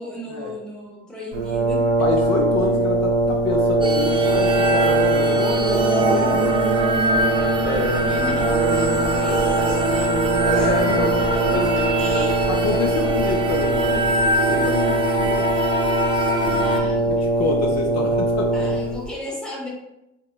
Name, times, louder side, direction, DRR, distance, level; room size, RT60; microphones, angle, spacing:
voice 1, 0.0-1.9 8.1-10.1 10.5-10.7 11.3-12.5 16.6-17.5 18.5-19.7, left 1 dB, 5° left, -4 dB, 0.9 m, -34 dB
Brass instrument, 1.3-19.1, right 2 dB, 75° right, 0.8 m, -22 dB
voice 2, 2.0-6.8 7.6-8.2 10.4-11.6 12.5-15.7 16.4-18.7, left 3 dB, 60° left, 2 dB, 0.4 m, -27 dB
sound 1, 3.8-16.8, right 2 dB, 15° right, 0.3 m, -23 dB
sound 2, 7.2-14.1, left 1 dB, 80° left, 1.0 m, -36 dB
3.0 x 2.2 x 2.2 m, 0.91 s
cardioid pair, 90°, 30 cm